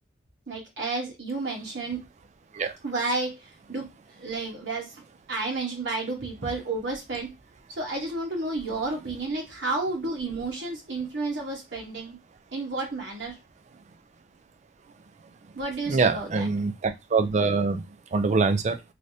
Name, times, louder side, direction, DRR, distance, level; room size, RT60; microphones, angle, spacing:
voice 1, 0.5-2.0 2.8-4.9 5.3-7.3 7.8-12.2 12.5-13.4 15.5-16.4, right 3 dB, 75° right, 1.1 m, -31 dB
voice 2, 15.9-18.8, right 4 dB, 40° right, 0.4 m, -24 dB
3.3 x 2.5 x 2.7 m
head